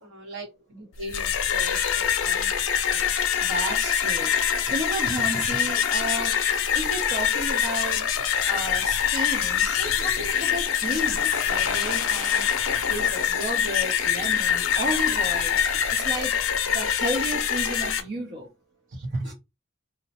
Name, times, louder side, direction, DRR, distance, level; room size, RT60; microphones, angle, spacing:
voice 1, 0.0-2.5 2.9-3.1 8.3-8.4 10.9-11.0 18.9-19.0, right 1 dB, 75° right, 1.2 m, -40 dB
sound 1, 1.0-18.0, left 8 dB, 80° left, 0.5 m, -24 dB
voice 2, 3.5-6.3 6.7-8.0 8.4-12.4 12.9-16.3 16.7-18.5 19.1-19.3, right 1 dB, 50° right, 0.7 m, -32 dB
2.9 x 2.0 x 2.9 m
head